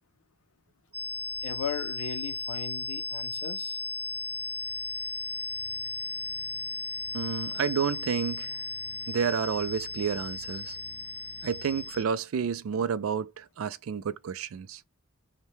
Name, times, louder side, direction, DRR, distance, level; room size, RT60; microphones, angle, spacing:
sound 1, 0.9-12.0, left 2 dB, 5° right, 0.3 m, -35 dB
voice 1, 1.4-3.8, left 6 dB, 85° left, 0.5 m, -37 dB
voice 2, 7.1-8.6 9.1-10.8 11.4-14.8, right 7 dB, 90° right, 0.4 m, -30 dB
2.7 x 2.2 x 3.1 m
head